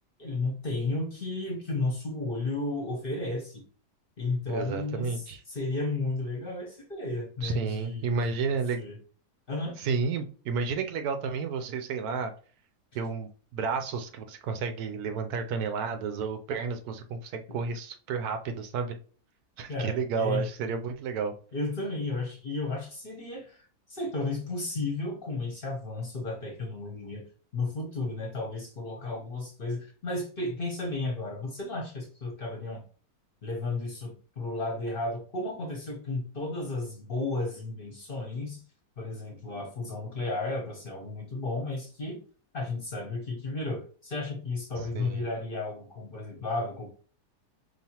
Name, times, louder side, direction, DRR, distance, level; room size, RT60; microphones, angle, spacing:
voice 1, 0.2-3.6 4.2-8.1 8.5-9.0 9.5-9.8 19.7-20.5 21.5-27.2 27.5-32.8 33.4-38.6 39.0-42.2 42.5-46.9, left 2 dB, 40° left, 0 dB, 0.9 m, -33 dB
voice 2, 4.5-5.4 7.4-8.8 9.8-12.3 12.9-19.0 19.6-21.3 44.8-45.2, right 5 dB, 75° right, 7 dB, 1.1 m, -31 dB
4.8 x 2.7 x 2.9 m, 0.39 s
omnidirectional pair, 1.7 m